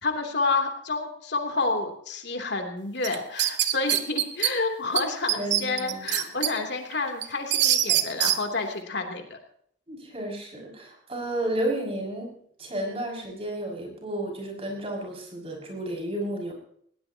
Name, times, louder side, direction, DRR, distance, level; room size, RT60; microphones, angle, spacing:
voice 1, 0.0-9.4, left 3 dB, 65° left, 3 dB, 3.2 m, -29 dB
sound 1, 3.0-4.5 5.0-5.1 5.3-6.5 6.9-8.4, right 12 dB, 70° right, 1.3 m, -23 dB
voice 2, 5.3-6.0 9.9-16.5, right 1 dB, 30° right, 0 dB, 6.3 m, -32 dB
21.0 x 18.5 x 2.9 m, 0.65 s
head